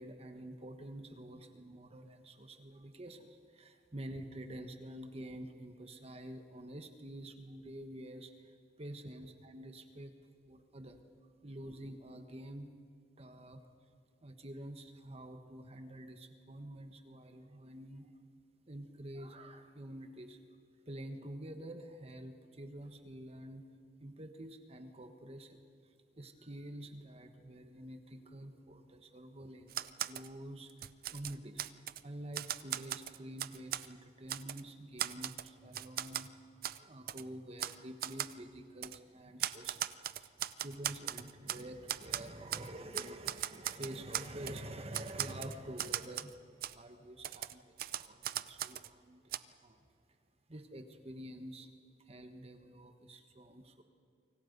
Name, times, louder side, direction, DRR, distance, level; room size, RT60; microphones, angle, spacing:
voice 1, 0.0-10.1 10.4-11.0 11.4-12.7 13.2-13.6 14.2-18.1 18.7-20.4 20.8-23.6 24.0-31.6 32.0-49.9 50.5-51.7 52.0-53.8, right 1 dB, 35° right, 6 dB, 1.4 m, -48 dB
Typewriter, 29.7-30.3 30.7-32.0 32.3-33.9 34.3-34.6 35.0-36.3 36.6-36.8 37.1-37.2 37.6-37.8 38.0-38.3 38.8-39.0 39.4-41.6 41.9-42.7 42.9-44.6 44.9-46.3 46.6-46.7 47.2-48.9 49.3-49.4, right 11 dB, 55° right, 0.6 m, -38 dB
28.0 x 25.5 x 5.4 m, 2.3 s
head